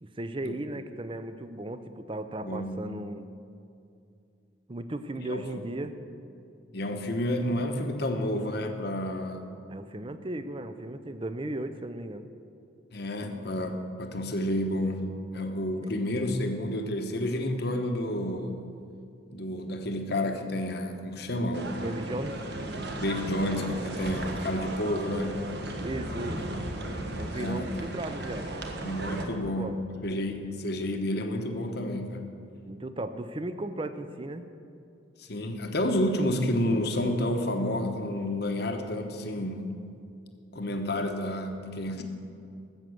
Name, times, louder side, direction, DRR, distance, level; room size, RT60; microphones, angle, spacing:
voice 1, 0.0-3.3 4.7-6.0 9.7-12.3 15.8-16.0 21.7-22.4 25.8-26.6 27.2-28.8 29.3-29.8 32.7-34.4, right 1 dB, 25° right, 10 dB, 0.5 m, -36 dB
voice 2, 2.4-2.8 5.2-5.6 6.7-9.4 12.9-15.1 15.3-18.5 19.3-21.8 23.0-25.4 27.3-27.8 28.8-32.3 35.2-39.7 40.5-42.0, left 1 dB, 55° left, 5 dB, 1.0 m, -30 dB
sound 1, 21.5-29.3, right 1 dB, 55° right, 1.3 m, -36 dB
13.5 x 7.4 x 7.8 m, 2.6 s
head